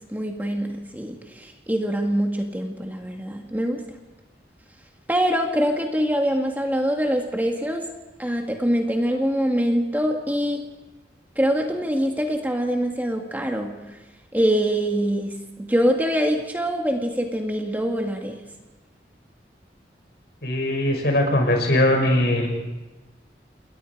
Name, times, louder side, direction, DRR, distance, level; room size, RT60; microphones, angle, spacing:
voice 1, 0.1-3.8 5.1-7.9 8.2-10.6 11.4-14.0 14.3-18.4, equal, 10° right, 2 dB, 1.9 m, -24 dB
voice 2, 20.4-22.5, left 1 dB, 65° left, 2 dB, 6.3 m, -20 dB
28.0 x 22.0 x 4.9 m, 1.1 s
head